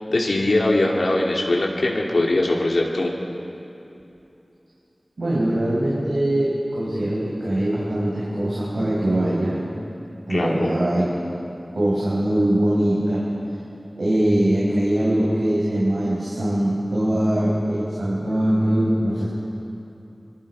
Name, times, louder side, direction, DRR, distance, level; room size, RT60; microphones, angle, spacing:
voice 1, 0.1-3.1 10.3-10.7, left 2 dB, 80° left, -2 dB, 2.9 m, -21 dB
voice 2, 5.2-9.6 10.3-11.0 11.7-13.3 14.0-19.3, right 1 dB, 90° right, -7 dB, 5.5 m, -22 dB
27.0 x 23.5 x 5.0 m, 2.8 s
wide cardioid pair, 45°, 0 cm